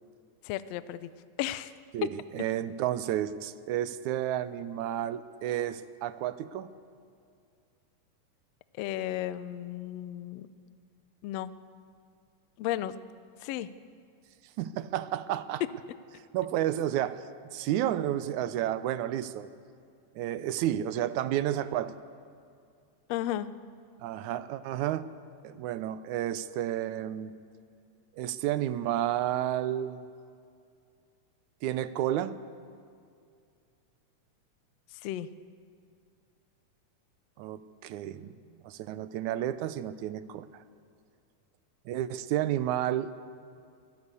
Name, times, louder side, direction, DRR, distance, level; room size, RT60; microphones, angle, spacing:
voice 1, 0.4-1.1 1.4-1.7 8.8-10.5 11.2-11.5 12.6-12.9 13.4-13.7 23.1-23.5 35.0-35.3, left 13 dB, 90° left, 14 dB, 1.4 m, -34 dB
voice 2, 1.9-6.7 14.6-15.6 16.3-17.2 17.5-19.5 20.2-22.0 24.0-25.1 25.4-27.3 28.2-30.0 31.6-32.4 37.4-38.3 38.6-40.6 41.9-43.1, right 12 dB, 75° right, 14 dB, 2.0 m, -31 dB
23.5 x 16.5 x 8.2 m, 2.3 s
omnidirectional pair, 3.7 m